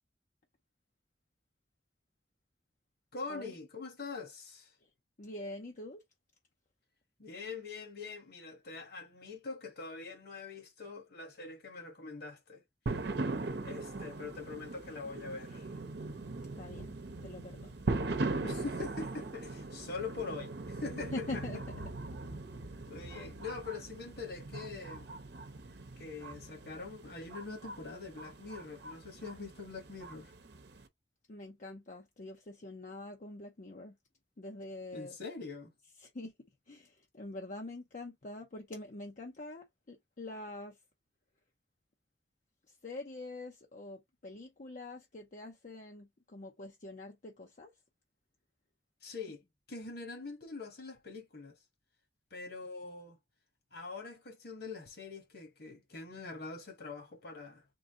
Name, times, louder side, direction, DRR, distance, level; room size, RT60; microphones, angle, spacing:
voice 1, 3.1-4.7 7.2-12.6 13.6-15.7 18.3-21.4 22.9-25.1 26.0-30.3 34.9-35.7 49.0-51.6 52.3-53.2 53.7-57.6, left 4 dB, 65° left, 1.7 m, -44 dB
voice 2, 5.2-6.0 16.6-16.9 17.2-17.7 21.1-21.6 31.3-34.0 34.4-35.2 36.0-36.3 36.7-40.8 42.7-47.7, left 2 dB, 45° left, 0.7 m, -45 dB
sound 1, 12.9-30.8, right 2 dB, 65° right, 0.8 m, -40 dB
3.8 x 2.7 x 3.7 m
head